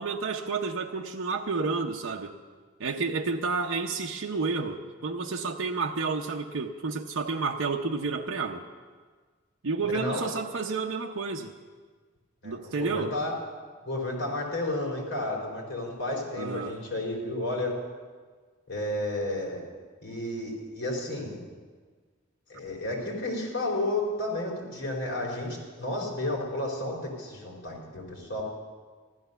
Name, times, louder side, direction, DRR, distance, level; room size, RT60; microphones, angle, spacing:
voice 1, 0.0-2.3 2.8-8.6 9.6-11.5 12.4-13.2 16.4-16.8, right 4 dB, 80° right, 1 dB, 0.8 m, -30 dB
voice 2, 9.8-10.3 12.4-13.3 13.8-17.8 18.7-19.6 20.0-21.4 22.5-28.4, left 1 dB, 55° left, -2 dB, 4.5 m, -32 dB
14.5 x 12.0 x 6.9 m, 1.5 s
head